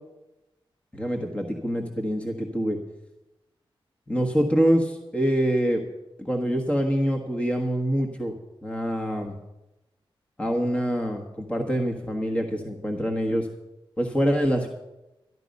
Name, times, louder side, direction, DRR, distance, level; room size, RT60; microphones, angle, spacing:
voice 1, 0.9-2.8 4.1-5.8 6.2-8.3 8.6-9.4 10.4-13.5 14.0-14.7, equal, 15° left, 1 dB, 1.4 m, -25 dB
12.5 x 12.0 x 5.3 m, 0.97 s
wide cardioid pair, 115°, 9 cm